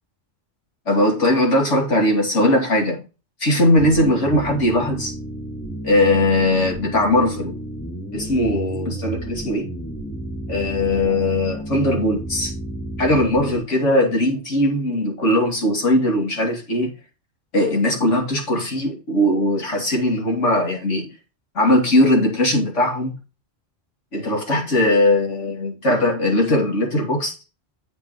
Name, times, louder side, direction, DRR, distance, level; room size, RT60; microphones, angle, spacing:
voice 1, 0.9-3.0 3.4-5.1 5.8-7.5 8.1-9.7 10.5-12.5 13.0-16.9 17.5-21.1 21.5-23.1 24.1-27.3, left 1 dB, 70° left, 3.0 m, -19 dB
sound 1, 3.8-13.6, right 1 dB, 10° left, 1.2 m, -31 dB
8.4 x 5.6 x 4.6 m
omnidirectional pair, 1.3 m